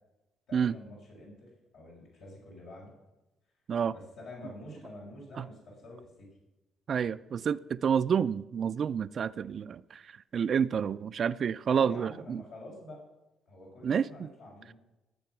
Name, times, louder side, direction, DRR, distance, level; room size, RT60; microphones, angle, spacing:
voice 1, 0.5-2.9 3.9-6.4 11.7-13.0 13.5-14.7, left 1 dB, 85° left, 5.5 m, -47 dB
voice 2, 6.9-12.4 13.8-14.3, right 7 dB, 55° right, 0.4 m, -29 dB
17.5 x 7.7 x 6.0 m
cardioid pair, 90°, 0 cm